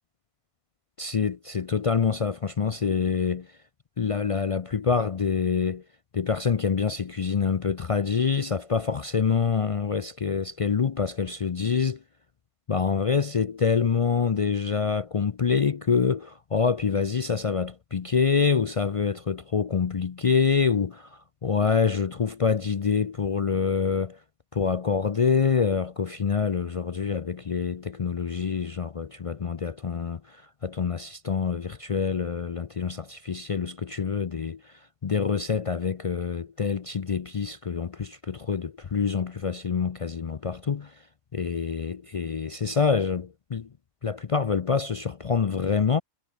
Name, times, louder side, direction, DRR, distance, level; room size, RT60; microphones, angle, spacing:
voice 1, 1.0-3.6 4.0-5.8 6.1-12.0 12.7-24.2 24.5-41.0 41.3-43.7 44.0-46.0, left 6 dB, 50° left, 0.4 m, -26 dB
omnidirectional pair, 1.3 m